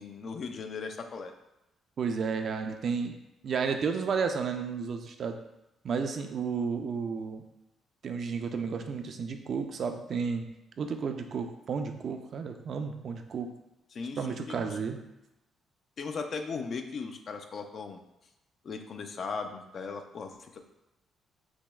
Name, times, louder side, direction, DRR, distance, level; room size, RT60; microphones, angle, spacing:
voice 1, 0.0-1.3 13.9-14.7 16.0-18.0 18.6-20.6, left 5 dB, 55° left, 6 dB, 0.4 m, -38 dB
voice 2, 2.0-3.2 3.4-5.4 5.8-7.4 8.0-10.5 10.8-13.5 14.2-15.0, right 5 dB, 55° right, 6 dB, 0.3 m, -32 dB
5.9 x 2.0 x 2.3 m, 0.92 s
cardioid pair, 90°, 0 cm